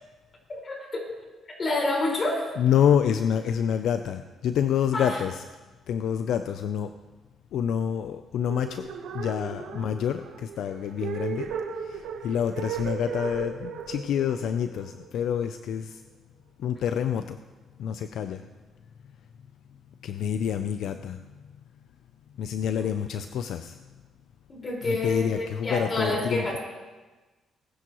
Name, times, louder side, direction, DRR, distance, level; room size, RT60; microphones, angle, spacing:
voice 1, 0.5-1.2 1.6-2.5 4.9-5.2 9.7-9.9 22.8-22.9 24.5-26.6, left 2 dB, 40° left, -2 dB, 4.8 m, -28 dB
voice 2, 2.6-5.3 5.9-6.9 7.5-8.9 9.1-11.5 12.2-16.0 16.6-17.4 17.8-18.4 20.0-21.2 22.4-23.8 24.9-26.4, left 8 dB, 75° left, 9 dB, 0.5 m, -27 dB
sound 1, 8.4-15.6, right 7 dB, 80° right, 1.2 m, -36 dB
20.0 x 10.0 x 3.0 m, 1.2 s
cardioid pair, 90°, 0 cm